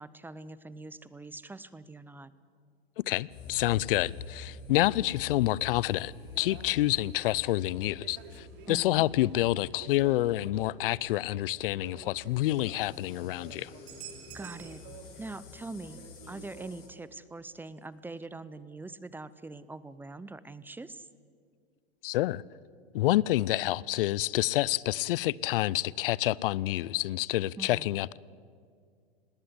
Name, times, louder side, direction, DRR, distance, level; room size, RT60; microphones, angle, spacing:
voice 1, 0.0-2.3 8.7-9.0 14.3-14.8 15.2-16.0 16.3-21.1 27.6-27.9, right 3 dB, 5° right, 0.6 m, -43 dB
voice 2, 3.0-13.7 22.0-22.4 22.9-28.2, left 16 dB, 60° left, 0.6 m, -28 dB
sound 1, 3.3-16.9, left 3 dB, 40° left, 4.5 m, -48 dB
sound 2, 6.3-15.3 15.6-16.9, right 7 dB, 55° right, 2.8 m, -51 dB
19.5 x 16.5 x 9.9 m
hypercardioid pair, 110°, 31 cm